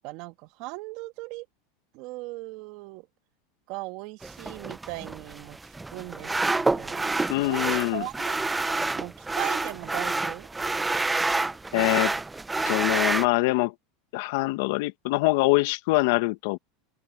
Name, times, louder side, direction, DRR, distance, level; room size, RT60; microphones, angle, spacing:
voice 1, 0.0-1.5 1.9-3.1 3.7-7.2 7.5-10.5 11.7-12.2, right 22 dB, 60° right, 2.1 m, -39 dB
sound 1, 4.2-13.3, right 3 dB, 10° right, 0.7 m, -28 dB
voice 2, 7.3-8.0 11.7-12.1 12.7-13.7 14.1-16.6, left 22 dB, 65° left, 1.4 m, -24 dB
open air
supercardioid pair, 115°, 0 cm